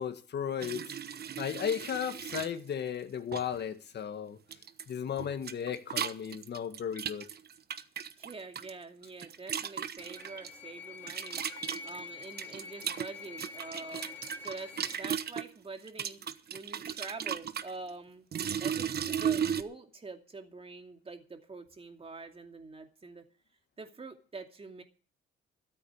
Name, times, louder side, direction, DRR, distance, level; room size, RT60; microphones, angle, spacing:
voice 1, 0.0-4.4 4.9-7.3, left 8 dB, 60° left, 1.8 m, -35 dB
sound 1, 0.6-2.5 3.3-3.6 4.5-4.9 5.2-8.7 9.0-10.5 11.1-15.5 15.9-17.7 18.3-19.6, right 8 dB, 55° right, 1.2 m, -35 dB
voice 2, 8.2-11.4 11.8-18.2 18.6-23.3 23.8-24.8, right 3 dB, 30° right, 2.6 m, -45 dB
sound 2, 10.0-15.0, left 5 dB, 10° left, 2.5 m, -46 dB
13.5 x 8.5 x 8.6 m
cardioid pair, 90°, 20 cm